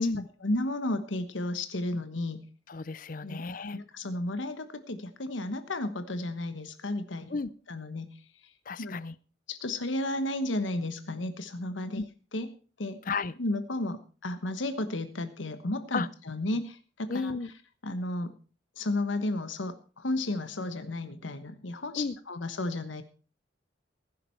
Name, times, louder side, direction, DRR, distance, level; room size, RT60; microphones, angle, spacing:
voice 1, 0.4-2.4 3.2-3.4 3.7-7.4 7.7-8.1 8.8-9.0 9.5-12.0 12.3-12.5 12.8-13.0 13.4-17.3 17.8-18.3 18.8-23.0, left 1 dB, 85° left, 10 dB, 1.2 m, -33 dB
voice 2, 2.7-3.8 7.3-7.5 8.7-9.1 11.9-12.1 13.1-13.3 15.9-16.1 17.1-17.5 22.0-22.2, left 4 dB, 45° left, 19 dB, 0.6 m, -32 dB
16.0 x 10.0 x 4.5 m, 0.37 s
head